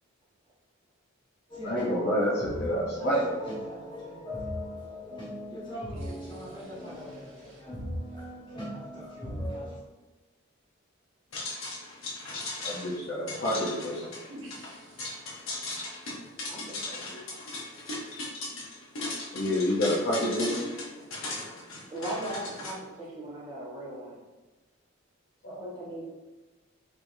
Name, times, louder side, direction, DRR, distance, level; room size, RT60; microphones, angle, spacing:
sound 1, 1.5-9.8, equal, 25° left, 0.9 m, -38 dB
voice 1, 1.6-3.4 12.6-14.0 19.3-20.5 25.4-25.6, equal, 55° left, -6 dB, 0.6 m, -28 dB
voice 2, 6.0-7.6 14.3-14.9 20.4-20.7, equal, 70° right, -3 dB, 0.9 m, -45 dB
sound 2, 11.3-22.7, left 2 dB, 85° left, 0.8 m, -38 dB
voice 3, 16.5-17.2 21.9-24.2 25.6-26.0, right 1 dB, 20° right, -7 dB, 1.0 m, -38 dB
3.3 x 3.2 x 2.6 m, 1.2 s
head